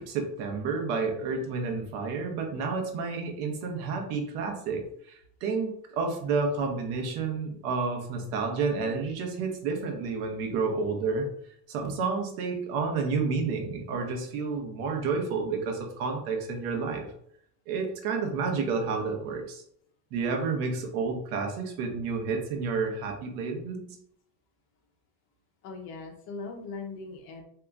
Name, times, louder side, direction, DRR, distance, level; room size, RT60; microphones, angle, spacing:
voice 1, 0.0-11.3 11.7-17.1 17.7-19.6 20.1-23.8, right 4 dB, 75° right, 2 dB, 1.0 m, -30 dB
voice 2, 25.6-27.4, left 4 dB, 30° left, 2 dB, 0.4 m, -39 dB
2.8 x 2.3 x 3.6 m, 0.69 s
cardioid pair, 165°, 46 cm